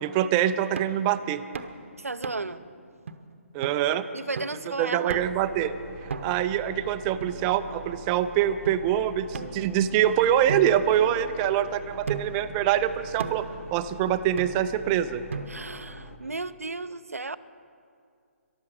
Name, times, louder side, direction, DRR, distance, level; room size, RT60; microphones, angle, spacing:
voice 1, 0.0-1.4 3.5-4.0 4.8-5.7 6.0-15.2, right 10 dB, 20° right, 10 dB, 0.4 m, -25 dB
sound 1, 0.8-1.0 1.5-1.8 2.2-2.6 3.1-3.2 3.6-3.8 4.4-4.6 5.1-5.5 6.1-6.5 7.2-7.9 8.7-8.8 9.3-10.0 10.5-11.5 12.1-12.5 13.2-13.6 14.4-14.8 15.3-15.8, right 5 dB, 60° right, 0.9 m, -37 dB
voice 2, 2.0-2.7 4.1-5.2 15.5-17.4, right 3 dB, 85° right, 13 dB, 0.5 m, -34 dB
sound 2, 5.1-16.2, left 1 dB, 70° left, 1.5 m, -45 dB
14.0 x 11.5 x 6.7 m, 2.3 s
figure-of-eight pair, 140°, 8 cm